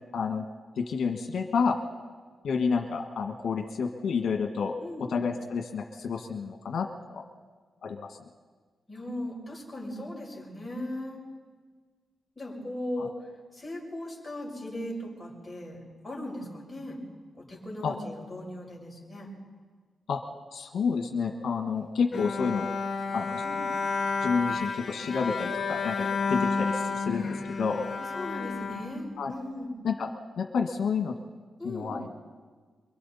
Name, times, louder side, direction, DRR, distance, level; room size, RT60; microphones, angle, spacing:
voice 1, 0.1-0.4 0.8-1.8 2.4-4.7 5.1-7.2 7.8-8.2 13.0-13.1 17.8-17.9 20.1-20.2 20.5-22.7 23.1-23.4 24.2-27.8 29.2-29.3 29.8-30.1 30.4-31.1 31.6-32.1, left 5 dB, 80° left, 3 dB, 1.6 m, -29 dB
voice 2, 4.8-5.1 8.9-11.2 12.4-13.2 13.5-17.0 17.4-19.3 23.4-23.7 26.3-26.4 28.1-29.7 31.6-32.0, left 1 dB, 10° left, -4 dB, 6.9 m, -38 dB
Bowed string instrument, 22.1-29.5, left 4 dB, 50° left, 2.6 m, -31 dB
27.0 x 23.5 x 4.2 m, 1.5 s
wide cardioid pair, 135°, 0 cm